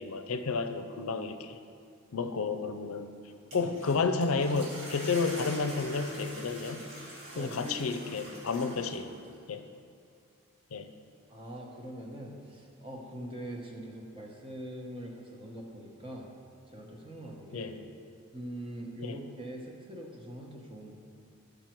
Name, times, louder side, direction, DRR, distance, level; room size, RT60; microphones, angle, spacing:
voice 1, 0.0-1.6 2.1-3.1 3.5-6.9 7.3-9.1 9.5-9.7 10.7-10.9 17.5-17.7 19.0-19.2, left 4 dB, 80° left, 9 dB, 0.5 m, -31 dB
sound 1, 3.3-9.3, right 1 dB, 55° right, 2.4 m, -45 dB
voice 2, 7.3-8.6 11.3-16.3 16.6-17.8 18.3-20.9, right 1 dB, 25° right, 0 dB, 1.0 m, -43 dB
12.5 x 5.2 x 4.5 m, 2.4 s
head